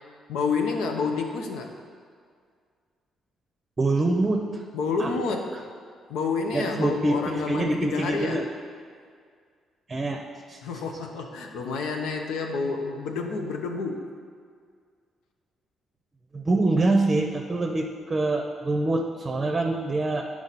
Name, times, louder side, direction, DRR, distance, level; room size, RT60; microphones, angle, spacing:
voice 1, 0.3-1.7 4.7-5.5 6.1-8.4 10.6-14.1, left 4 dB, 90° left, 3 dB, 0.8 m, -29 dB
voice 2, 3.8-4.6 5.0-5.1 6.5-8.5 9.9-10.2 10.5-10.6 16.3-20.2, right 2 dB, 30° right, 2 dB, 0.7 m, -25 dB
10.5 x 4.8 x 4.1 m, 2.1 s
cardioid pair, 90°, 0 cm